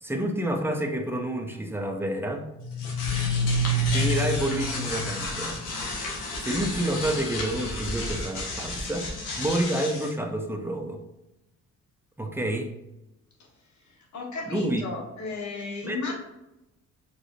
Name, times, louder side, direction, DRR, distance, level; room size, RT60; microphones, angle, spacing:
voice 1, 0.0-2.4 3.9-5.6 6.4-9.1 9.4-11.0 12.2-12.7 14.5-14.8 15.8-16.1, right 1 dB, 10° right, 3 dB, 0.7 m, -29 dB
sound 1, 2.6-10.1, left 1 dB, 90° left, 1.4 m, -29 dB
voice 2, 14.1-16.1, left 3 dB, 70° left, -1 dB, 1.5 m, -34 dB
4.8 x 3.9 x 2.6 m, 0.94 s
cardioid pair, 90°, 30 cm